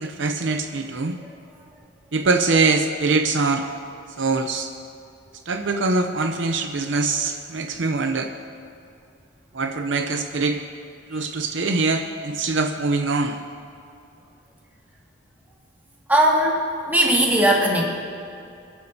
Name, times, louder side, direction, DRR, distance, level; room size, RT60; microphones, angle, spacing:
voice 1, 0.0-1.2 2.1-3.6 4.2-4.7 5.5-8.3 9.5-10.6 11.1-13.4, right 3 dB, 65° right, 5 dB, 0.6 m, -23 dB
voice 2, 16.1-17.9, right 1 dB, 10° right, -3 dB, 2.0 m, -19 dB
26.0 x 11.0 x 2.8 m, 2.5 s
head